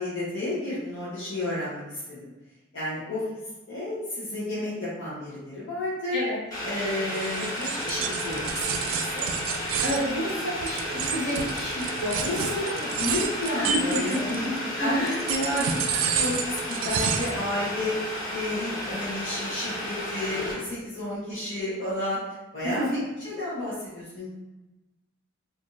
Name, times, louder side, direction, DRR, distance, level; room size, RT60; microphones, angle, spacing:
voice 1, 0.0-1.8 2.1-2.2 2.7-3.2 3.7-6.2 6.6-9.3 12.2-14.4 14.8-17.9 18.3-22.2 22.5-23.0 23.2-24.3, left 1 dB, 55° left, -10 dB, 1.0 m, -31 dB
Boiling, 6.5-20.5, left 1 dB, 15° left, 1.3 m, -33 dB
sound 1, 7.1-14.6 15.1-17.4, right 7 dB, 75° right, 0.3 m, -30 dB
voice 2, 9.8-12.2 12.6-12.7 13.5-15.2 22.6-23.0, equal, 80° left, -8 dB, 1.4 m, -30 dB
3.4 x 2.6 x 2.5 m, 1.1 s
head